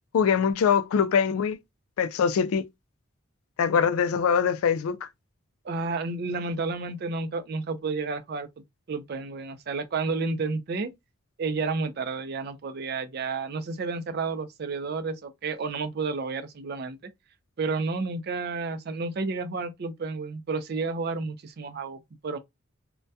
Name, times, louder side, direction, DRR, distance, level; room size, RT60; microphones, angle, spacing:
voice 1, 0.1-1.6 2.0-2.7 3.6-5.1, left 6 dB, 80° left, 0.3 m, -23 dB
voice 2, 5.6-8.5 8.9-10.9 11.4-17.0 17.6-22.4, right 4 dB, 50° right, 0.4 m, -31 dB
2.2 x 2.2 x 2.6 m
head